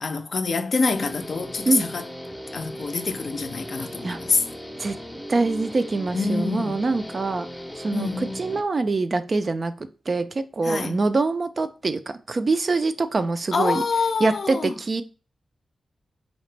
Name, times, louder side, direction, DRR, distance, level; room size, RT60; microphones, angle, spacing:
voice 1, 0.0-2.0 2.5-4.4 6.1-6.8 7.9-8.4 10.6-11.0 13.5-14.8, left 4 dB, 50° left, 0.5 m, -26 dB
Guitar, 0.9-8.6, equal, ahead, 0.6 m, -37 dB
voice 2, 5.3-7.5 7.8-8.1 8.3-9.7 10.1-13.8 14.2-15.0, right 3 dB, 35° right, 0.3 m, -24 dB
4.1 x 2.9 x 3.2 m
wide cardioid pair, 135°, 0 cm